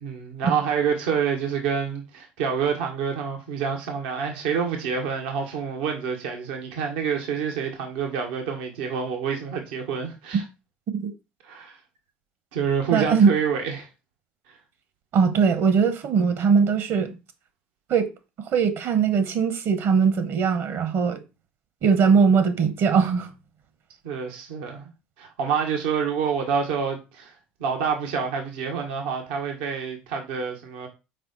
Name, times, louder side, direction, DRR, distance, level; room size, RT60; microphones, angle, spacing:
voice 1, 0.0-10.4 11.4-11.8 12.5-13.9 14.5-14.6 24.0-24.9 25.2-27.3 27.6-30.9, right 6 dB, 80° right, 1.5 m, -27 dB
voice 2, 12.9-13.3 15.1-17.1 17.9-18.1 18.5-21.2 21.8-23.3, right 6 dB, 55° right, 1.4 m, -20 dB
5.8 x 4.6 x 4.3 m
hypercardioid pair, 75°, 5 cm